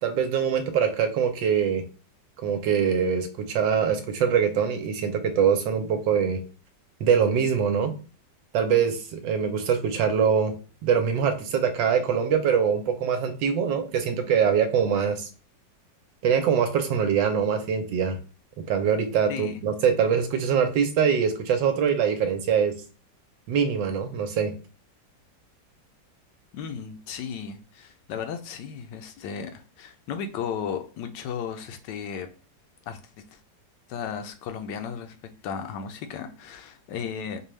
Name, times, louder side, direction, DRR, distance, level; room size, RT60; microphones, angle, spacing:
voice 1, 0.0-1.8 2.4-6.4 7.0-7.9 8.5-10.5 10.8-15.3 16.2-18.2 18.7-22.8 23.5-24.5, right 7 dB, 90° right, 1.4 m, -23 dB
voice 2, 19.3-19.6 26.5-32.3 32.9-33.0 33.3-33.4 33.9-35.2 35.4-37.4, left 7 dB, 80° left, 1.2 m, -35 dB
5.2 x 2.3 x 3.1 m
omnidirectional pair, 1.9 m